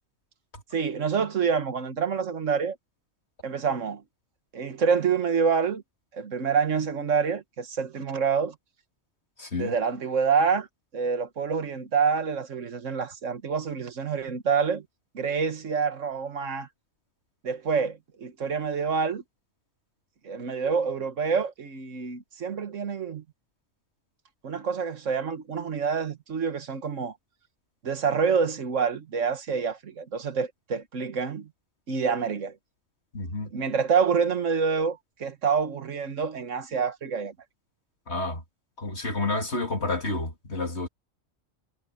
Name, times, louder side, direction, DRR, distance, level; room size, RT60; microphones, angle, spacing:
voice 1, 0.7-2.8 3.4-4.0 4.5-5.8 6.1-8.6 9.6-10.7 10.9-14.8 15.1-16.7 17.4-19.2 20.2-23.2 24.4-27.1 27.8-31.5 31.9-32.6 33.5-37.3, right 6 dB, 70° right, 1.8 m, -27 dB
voice 2, 9.4-9.7 33.1-33.5 38.1-38.4 38.8-40.9, left 2 dB, 55° left, 2.8 m, -29 dB
omnidirectional pair, 1.3 m